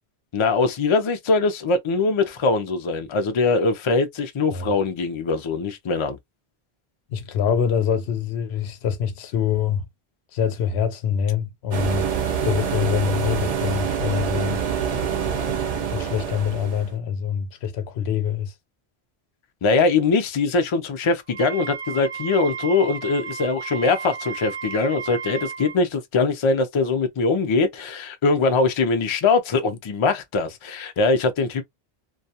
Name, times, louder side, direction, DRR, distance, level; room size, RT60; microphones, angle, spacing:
voice 1, 0.3-6.2 19.6-31.6, left 3 dB, 45° left, 0.4 m, -22 dB
voice 2, 7.1-9.8 10.3-12.1 12.4-14.6 15.9-18.5, left 8 dB, 90° left, 0.8 m, -25 dB
sound 1, 11.7-16.9, right 7 dB, 50° right, 0.5 m, -26 dB
Wind instrument woodwind instrument, 21.3-25.8, right 6 dB, 85° right, 0.9 m, -34 dB
2.3 x 2.2 x 2.7 m
omnidirectional pair, 1.0 m